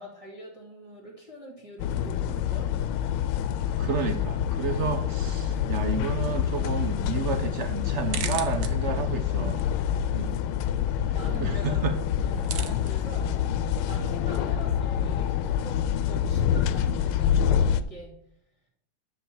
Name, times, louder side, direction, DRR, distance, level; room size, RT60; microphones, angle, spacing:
voice 1, 0.0-2.7 4.6-4.8 9.8-10.5 11.1-11.8 12.2-13.4 13.9-18.2, right 1 dB, 15° right, -3 dB, 2.4 m, -43 dB
sound 1, 1.8-17.8, left 9 dB, 85° left, 1.5 m, -27 dB
voice 2, 3.8-9.7 10.1-10.3 11.1-11.2 11.4-12.0, right 5 dB, 75° right, 8 dB, 0.6 m, -31 dB
sound 2, 7.8-17.5, right 8 dB, 60° right, 1.0 m, -44 dB
sound 3, 9.8-14.8, equal, 5° left, 1.7 m, -47 dB
10.5 x 4.4 x 7.1 m, 0.70 s
omnidirectional pair, 2.3 m